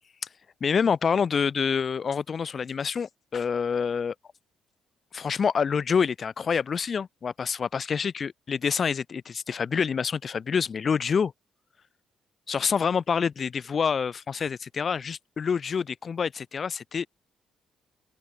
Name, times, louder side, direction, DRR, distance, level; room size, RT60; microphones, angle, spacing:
voice 1, 0.6-4.1 5.1-11.3 12.5-17.1, left 6 dB, 45° left, 3.8 m, -27 dB
open air
cardioid pair, 90°, 0 cm